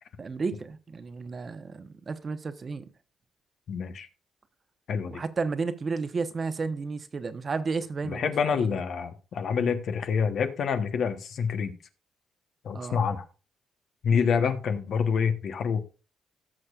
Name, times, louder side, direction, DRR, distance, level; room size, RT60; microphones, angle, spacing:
voice 1, 0.2-2.8 5.1-8.8 12.7-13.0, right 4 dB, 40° right, 0.9 m, -32 dB
voice 2, 3.7-4.1 4.9-5.2 8.0-11.7 12.6-13.2 14.0-15.8, left 6 dB, 65° left, 1.1 m, -27 dB
17.0 x 6.4 x 2.4 m
cardioid pair, 90°, 0 cm